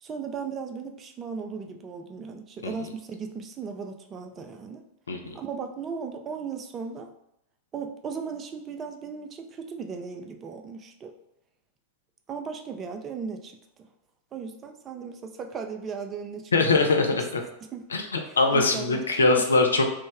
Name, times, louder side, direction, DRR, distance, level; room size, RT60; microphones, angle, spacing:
voice 1, 0.0-4.8 5.3-7.1 7.7-11.1 12.3-13.9 14.3-16.9 17.7-17.9 18.2-19.5, right 5 dB, 25° right, 5 dB, 0.4 m, -37 dB
voice 2, 5.1-5.4 16.5-17.4 17.9-18.0 18.4-19.8, left 3 dB, 70° left, 3 dB, 0.4 m, -22 dB
3.1 x 2.1 x 3.3 m, 0.81 s
figure-of-eight pair, 90°, 0 cm